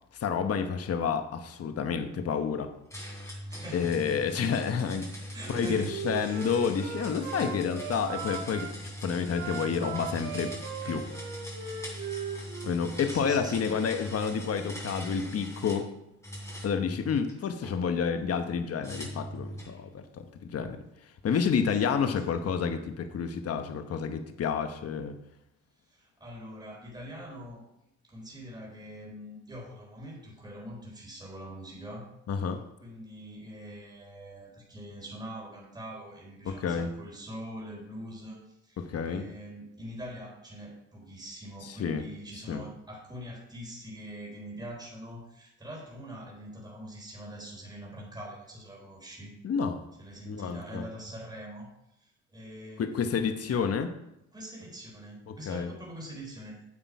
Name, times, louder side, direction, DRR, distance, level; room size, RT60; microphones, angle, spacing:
voice 1, 0.2-2.7 3.7-5.1 5.5-10.5 10.8-11.1 12.6-15.9 16.6-20.8 21.2-25.2 32.3-32.6 36.5-36.9 38.8-39.3 41.6-42.0 42.5-42.6 49.4-49.8 50.3-50.8 52.8-53.9 55.3-55.7, left 6 dB, 55° left, 7 dB, 1.1 m, -29 dB
sound 1, 2.9-15.9 16.2-17.7 18.8-19.8, equal, 10° left, 3.4 m, -41 dB
voice 2, 3.5-4.0 5.3-5.9 6.2-7.1 12.5-12.7 13.1-13.7 14.7-14.9 21.6-22.2 25.8-27.6 28.0-32.1 32.8-49.3 50.0-51.7 52.0-53.7 54.3-56.6, equal, 15° right, -3 dB, 3.9 m, -44 dB
Wind instrument woodwind instrument, 5.4-8.7 9.3-12.8, right 6 dB, 60° right, 1.9 m, -38 dB
8.9 x 7.7 x 4.8 m, 0.81 s
cardioid pair, 90°, 30 cm